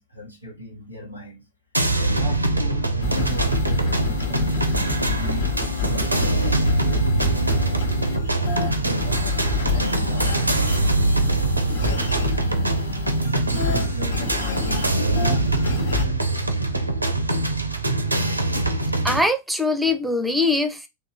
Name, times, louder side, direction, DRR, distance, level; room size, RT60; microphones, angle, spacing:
voice 1, 0.0-1.5 2.0-4.5 4.7-5.5 5.9-10.5 11.0-12.1 13.2-16.6, right 3 dB, 90° left, 1.2 m, -35 dB
sound 1, 1.7-19.2, right 2 dB, 85° right, 0.5 m, -23 dB
sound 2, 3.0-16.1, left 5 dB, 60° left, 1.0 m, -29 dB
voice 2, 19.0-20.9, left 2 dB, 5° right, 0.5 m, -22 dB
2.9 x 2.6 x 3.9 m
figure-of-eight pair, 90°, 0 cm